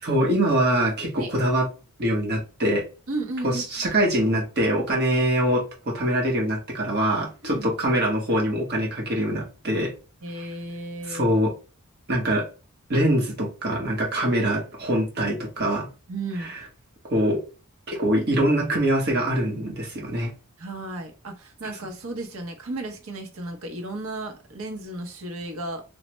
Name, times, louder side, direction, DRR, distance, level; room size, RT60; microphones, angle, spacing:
voice 1, 0.0-1.7 2.0-2.8 3.4-9.9 10.4-10.5 11.0-11.5 12.1-12.4 12.9-15.9 16.4-16.6 17.1-17.4 17.9-20.3, right 1 dB, 45° right, 1.1 m, -23 dB
voice 2, 3.1-4.0 5.1-5.2 7.4-7.7 10.2-11.3 16.1-16.5 20.6-25.8, right 2 dB, 65° right, 0.8 m, -34 dB
3.1 x 2.1 x 3.0 m
head